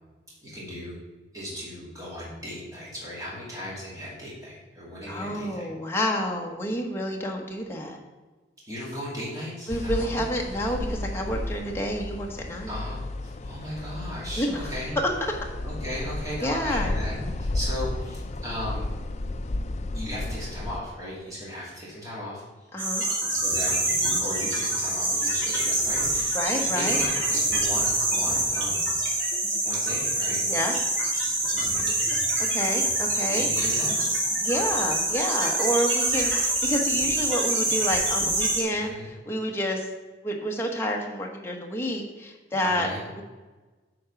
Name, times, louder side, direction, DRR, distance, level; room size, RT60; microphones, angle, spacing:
voice 1, 0.4-1.0 1.3-5.7 8.7-10.2 12.7-14.9 15.6-18.9 19.9-22.4 23.3-28.8 29.6-30.4 31.5-32.0 33.3-34.0 38.7-39.1 42.6-43.0, equal, 20° right, -7 dB, 2.5 m, -36 dB
voice 2, 5.1-8.0 9.7-12.7 14.4-14.7 15.0-15.1 16.4-16.9 22.7-23.0 26.3-27.0 30.5-30.7 32.5-33.5 34.4-39.0 39.3-39.9 40.2-43.2, equal, 15° left, 0 dB, 1.1 m, -29 dB
sound 1, 9.7-20.8, left 2 dB, 35° left, 0.4 m, -33 dB
sound 2, 22.8-38.6, right 2 dB, 80° right, 2.8 m, -25 dB
8.7 x 4.6 x 5.9 m, 1.2 s
head